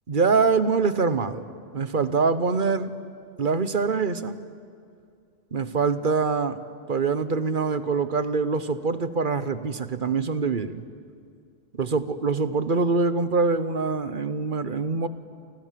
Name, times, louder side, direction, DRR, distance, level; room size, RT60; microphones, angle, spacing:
voice 1, 0.1-1.4 1.7-2.9 3.4-4.3 5.5-6.6 6.9-10.8 11.8-15.1, right 4 dB, 55° right, 13 dB, 1.3 m, -24 dB
29.5 x 25.0 x 7.6 m, 2.4 s
omnidirectional pair, 1.0 m